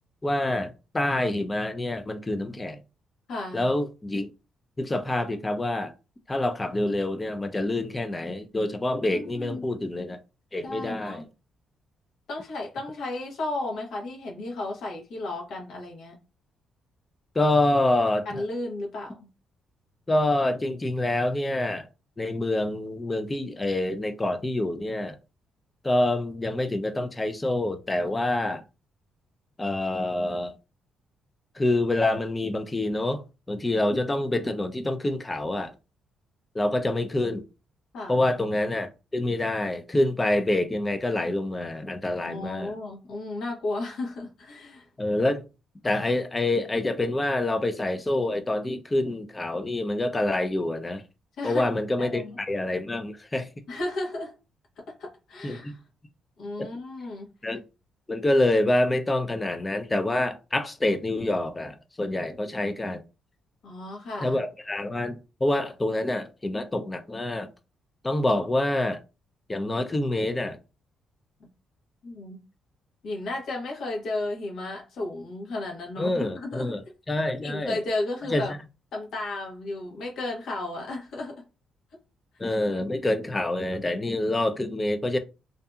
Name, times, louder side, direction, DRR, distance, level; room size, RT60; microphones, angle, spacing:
voice 1, 0.2-2.8 3.5-4.3 4.8-5.9 6.3-10.2 10.5-11.2 17.4-18.4 20.1-21.9 22.2-25.2 25.8-28.6 29.6-30.5 31.6-35.7 36.5-37.5 38.1-42.7 45.0-45.4 45.8-51.0 51.4-53.5 55.4-55.7 56.6-56.7 57.4-57.6 58.1-63.0 64.2-67.5 68.0-69.0 69.5-70.6 76.0-76.8 77.1-77.8 78.3-78.4 82.4-85.2, left 1 dB, 20° left, 0.4 m, -26 dB
voice 2, 3.3-3.7 9.1-9.6 10.6-11.3 12.3-16.2 18.2-19.3 37.9-38.2 42.1-44.9 51.4-51.6 52.1-52.4 53.7-54.3 55.0-55.8 56.4-57.3 63.6-64.4 72.0-72.4 73.0-76.7 77.4-78.5 78.9-81.4, left 2 dB, 75° left, 1.1 m, -34 dB
2.6 x 2.6 x 2.3 m
cardioid pair, 90°, 0 cm